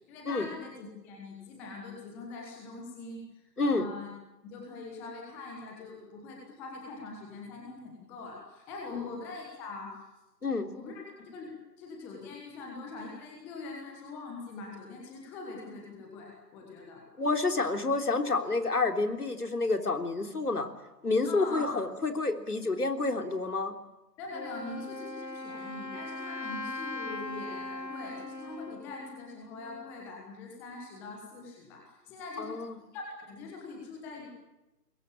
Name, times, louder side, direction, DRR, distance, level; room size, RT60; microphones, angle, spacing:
voice 1, 0.1-3.2 3.6-4.1 4.4-10.0 10.7-17.0 21.2-21.7 24.2-32.5 32.8-34.3, left 3 dB, 5° left, -1 dB, 1.3 m, -43 dB
voice 2, 17.2-20.7 21.0-23.7 32.4-32.8, left 3 dB, 65° left, 5 dB, 3.6 m, -29 dB
Wind instrument woodwind instrument, 24.3-30.1, left 2 dB, 85° left, 2.4 m, -40 dB
25.5 x 22.0 x 8.5 m, 0.97 s
figure-of-eight pair, 150°, 49 cm